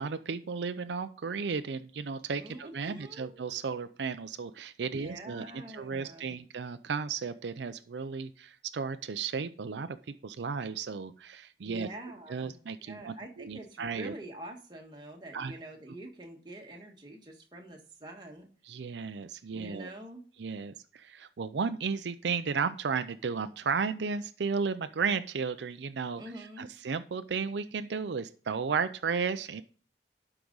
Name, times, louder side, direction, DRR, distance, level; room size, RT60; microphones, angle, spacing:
voice 1, 0.0-10.0 10.2-11.9 12.3-14.1 15.3-15.5 18.6-19.9 20.4-26.2 26.6-29.6, right 5 dB, 80° right, 11 dB, 0.5 m, -34 dB
voice 2, 2.4-3.4 4.9-6.4 11.6-18.5 19.5-20.2 26.1-26.7, right 1 dB, 25° right, 1 dB, 1.6 m, -46 dB
12.0 x 4.9 x 3.9 m, 0.41 s
head